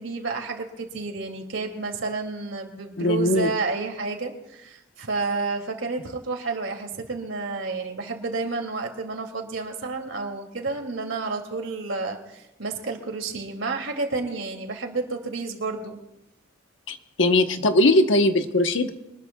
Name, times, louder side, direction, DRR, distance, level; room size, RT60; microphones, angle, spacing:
voice 1, 0.0-16.0, right 3 dB, 75° right, 3 dB, 2.6 m, -30 dB
voice 2, 3.0-3.5 16.9-18.9, left 1 dB, 70° left, 7 dB, 1.1 m, -20 dB
24.0 x 20.0 x 2.3 m, 0.88 s
head